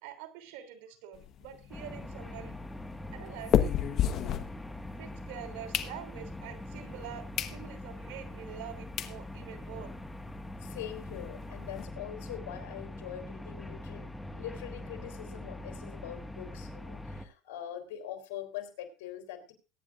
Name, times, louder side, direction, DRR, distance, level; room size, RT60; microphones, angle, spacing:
voice 1, 0.0-2.5 2.8-3.6 5.0-9.9, right 10 dB, 75° right, 6 dB, 3.1 m, -46 dB
sound 1, 1.1-5.1 5.5-6.4 6.9-7.0 7.3-7.6 8.0-8.1 8.7-8.8 9.0-9.2 9.6-9.7 9.9-10.0 10.3-10.4 10.7-11.8, left 10 dB, 50° left, 1.2 m, -32 dB
sound 2, 1.7-17.3, left 1 dB, 5° left, 1.7 m, -43 dB
voice 2, 10.6-14.0 14.3-19.5, left 11 dB, 85° left, 5 dB, 3.5 m, -43 dB
22.5 x 9.8 x 2.5 m, 0.32 s
supercardioid pair, 110°, 0 cm